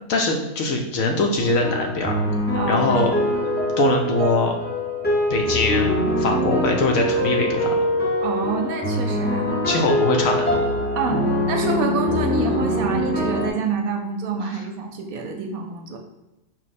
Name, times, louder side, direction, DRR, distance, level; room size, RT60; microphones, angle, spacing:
voice 1, 0.1-2.1 2.7-3.1 3.8-4.5 5.3-7.7 9.7-10.7, left 2 dB, 70° left, 2 dB, 0.9 m, -22 dB
sound 1, 1.3-13.5, equal, 15° left, 0.3 m, -23 dB
voice 2, 2.5-3.3 8.2-9.6 10.9-16.0, right 4 dB, 70° right, 3 dB, 1.0 m, -27 dB
4.5 x 2.1 x 4.1 m, 1.0 s
omnidirectional pair, 1.7 m